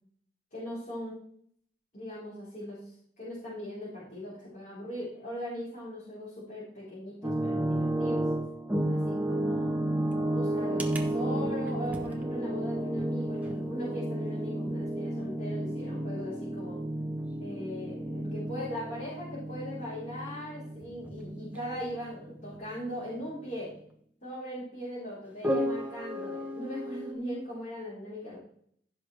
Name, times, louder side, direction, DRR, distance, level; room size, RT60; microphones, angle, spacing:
voice 1, 0.5-1.2 1.9-2.9 3.2-8.2 8.9-9.8 10.3-16.8 17.4-23.7 24.2-28.4, equal, 50° left, -11 dB, 4.1 m, -39 dB
sound 1, 7.2-22.8 23.1-23.3 25.4-27.1, right 1 dB, 10° right, 1.1 m, -32 dB
15.5 x 6.2 x 3.4 m, 0.65 s
head